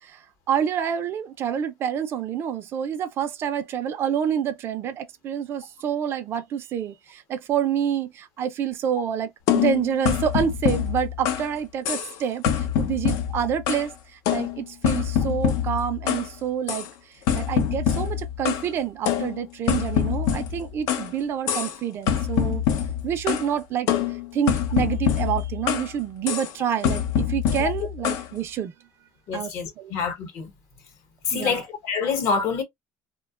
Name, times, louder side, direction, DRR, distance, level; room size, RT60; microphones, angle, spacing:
voice 1, 0.0-22.6 23.0-28.7 29.3-30.0 31.3-31.6, right 9 dB, 45° right, 0.4 m, -28 dB
sound 1, 9.5-11.5 11.9-12.2 12.4-13.9 14.3-16.3 16.7-16.9 17.3-18.7 19.1-21.1 21.5-21.8 22.1-23.5 23.9-25.9 26.3-26.5 26.8-28.3, left 9 dB, 75° left, 0.5 m, -25 dB
voice 2, 29.3-30.5 31.3-32.6, left 5 dB, 55° left, 0.9 m, -26 dB
2.7 x 2.2 x 2.3 m
cardioid pair, 150°, 6 cm